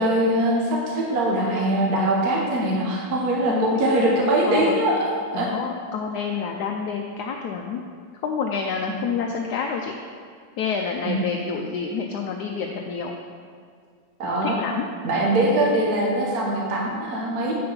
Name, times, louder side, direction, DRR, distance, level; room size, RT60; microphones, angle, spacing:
voice 1, 0.0-5.0 5.3-5.5 11.0-11.3 14.2-14.6 15.0-17.5, right 1 dB, 55° right, -2 dB, 1.5 m, -22 dB
voice 2, 3.5-3.8 4.5-4.8 5.3-7.8 8.2-9.9 10.6-13.1 14.2-14.9, left 6 dB, 70° left, 2 dB, 1.0 m, -28 dB
7.6 x 5.6 x 5.6 m, 2.1 s
omnidirectional pair, 2.1 m